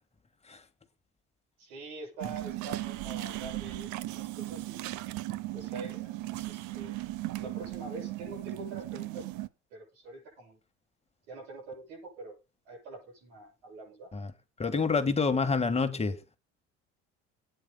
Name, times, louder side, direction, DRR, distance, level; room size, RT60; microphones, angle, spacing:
voice 1, 1.6-4.8 5.5-7.0 7.4-9.3 9.7-10.6 11.3-12.4 12.7-14.1, right 3 dB, 85° right, 7.3 m, -45 dB
sound 1, 2.2-9.5, right 17 dB, 70° right, 0.8 m, -37 dB
voice 2, 14.6-16.2, left 4 dB, 20° left, 1.6 m, -28 dB
23.5 x 9.3 x 2.2 m
supercardioid pair, 85°, 31 cm